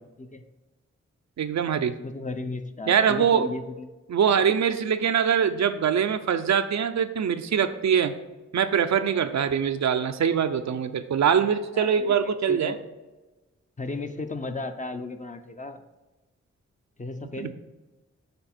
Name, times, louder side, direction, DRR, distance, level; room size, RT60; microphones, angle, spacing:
voice 1, 1.4-1.9 2.9-3.5 4.1-8.1 8.5-12.7 17.4-17.5, right 7 dB, 70° right, 9 dB, 0.5 m, -23 dB
voice 2, 2.0-3.9 11.7-12.8 13.8-15.8 17.0-17.5, left 3 dB, 25° left, 8 dB, 0.6 m, -35 dB
7.0 x 3.4 x 4.3 m, 1.1 s
cardioid pair, 45°, 29 cm